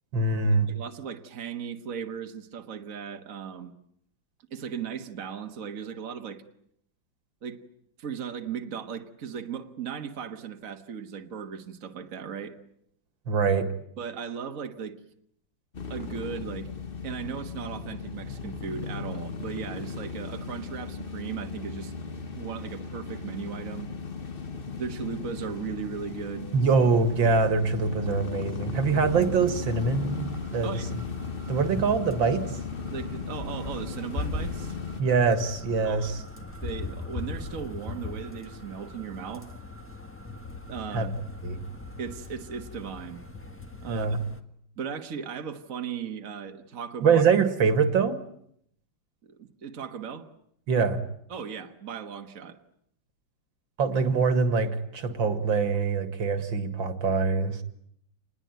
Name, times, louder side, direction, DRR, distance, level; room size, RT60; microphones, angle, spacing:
voice 1, 0.1-0.7 13.3-13.7 26.5-30.7 31.5-32.4 35.0-36.2 40.9-41.1 41.4-41.6 43.9-44.2 47.0-48.2 50.7-51.0 53.8-57.6, right 5 dB, 65° right, 9 dB, 2.5 m, -24 dB
voice 2, 0.7-3.7 4.5-6.4 7.4-7.6 8.0-12.6 14.0-15.0 15.9-16.7 17.0-21.9 22.4-23.9 24.8-26.5 30.6-30.9 32.9-34.8 35.8-36.1 36.3-39.5 40.7-41.1 42.0-43.2 43.8-44.1 44.8-47.2 49.3-50.3 51.3-52.6, right 7 dB, 45° right, 5 dB, 1.6 m, -37 dB
sound 1, 15.7-35.0, left 5 dB, 30° left, 1.4 m, -36 dB
sound 2, 28.9-44.4, left 2 dB, 5° left, 1.4 m, -40 dB
27.5 x 20.5 x 9.2 m, 0.72 s
omnidirectional pair, 2.2 m